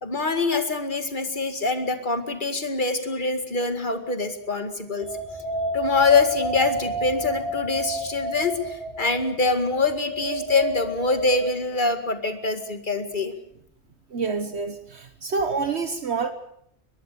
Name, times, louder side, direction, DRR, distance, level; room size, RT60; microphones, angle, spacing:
voice 1, 0.0-5.1 5.7-13.3, left 3 dB, 40° left, 7 dB, 2.3 m, -24 dB
sound 1, 5.0-11.5, right 1 dB, 20° right, 5.2 m, -31 dB
voice 2, 14.1-16.3, right 4 dB, 65° right, 9 dB, 1.5 m, -27 dB
23.0 x 21.0 x 6.8 m, 0.68 s
omnidirectional pair, 1.2 m